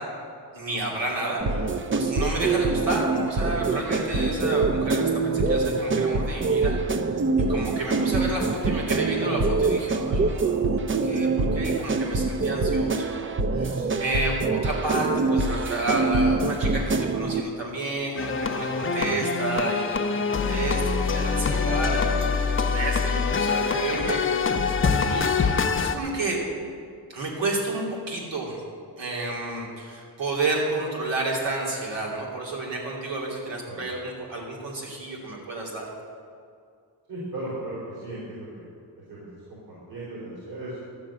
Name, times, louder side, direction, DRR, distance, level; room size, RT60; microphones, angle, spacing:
voice 1, 0.5-7.2 7.5-22.4 22.7-26.4 27.1-28.6 29.0-35.9, right 2 dB, 90° right, -2 dB, 3.0 m, -31 dB
sound 1, 1.4-17.4, right 3 dB, 30° right, 0.5 m, -25 dB
sound 2, 18.2-26.0, left 5 dB, 30° left, 0.7 m, -25 dB
voice 2, 37.1-38.7 39.1-40.8, right 1 dB, 60° right, -7 dB, 3.6 m, -36 dB
12.0 x 6.5 x 8.6 m, 2.3 s
wide cardioid pair, 145°, 43 cm